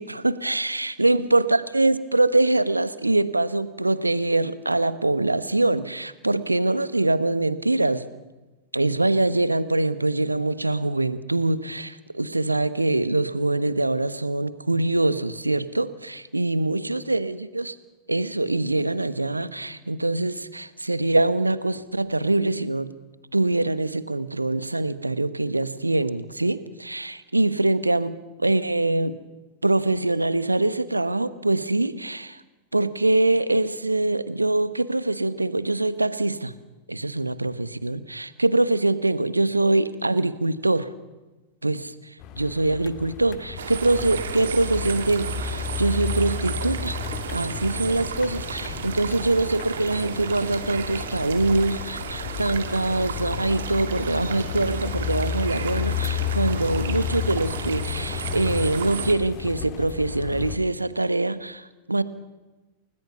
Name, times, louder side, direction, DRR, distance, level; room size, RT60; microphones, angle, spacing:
voice 1, 0.0-8.1 8.7-17.8 18.1-22.9 23.3-29.2 29.6-32.4 32.7-36.5 36.9-40.9 41.6-47.0 47.3-62.0, right 2 dB, 85° right, 15 dB, 1.1 m, -24 dB
sound 1, 42.2-60.6, left 9 dB, 40° left, 2.0 m, -32 dB
sound 2, 43.6-59.1, right 7 dB, 65° right, 2.2 m, -34 dB
29.5 x 19.0 x 7.0 m, 1.1 s
figure-of-eight pair, 90°, 0 cm